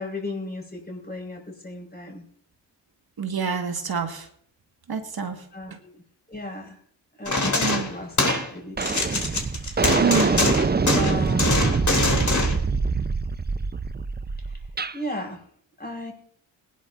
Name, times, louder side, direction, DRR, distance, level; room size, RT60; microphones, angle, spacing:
voice 1, 0.0-2.2 5.5-6.0 6.3-6.8 7.1-9.0 10.9-12.1 14.4-14.6 14.9-15.4 15.8-16.1, left 1 dB, 20° left, 1 dB, 5.2 m, -36 dB
voice 2, 3.2-4.3 4.9-5.4 5.7-5.8 7.6-7.9 10.0-10.5 11.5-11.6, right 6 dB, 45° right, 5 dB, 1.9 m, -27 dB
sound 1, 7.3-8.5 8.8-12.6, left 2 dB, 35° left, 3.4 m, -24 dB
sound 2, 8.3-8.5 8.8-15.0, right 4 dB, 20° right, 0.8 m, -24 dB
21.5 x 11.0 x 2.7 m, 0.63 s
hypercardioid pair, 40°, 49 cm